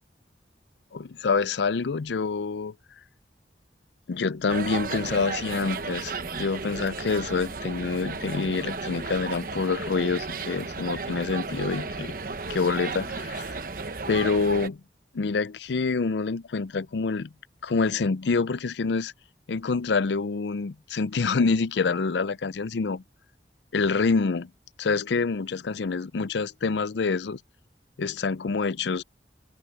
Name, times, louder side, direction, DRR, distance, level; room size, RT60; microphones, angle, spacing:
voice 1, 0.9-2.7 4.1-12.1 12.5-13.6 14.1-14.8 15.1-17.3 17.6-19.1 19.5-23.0 23.7-24.5 24.8-27.4 28.0-29.0, left 4 dB, 80° left, 0.5 m, -26 dB
sound 1, 4.5-14.7, right 4 dB, 50° right, 1.0 m, -34 dB
open air
head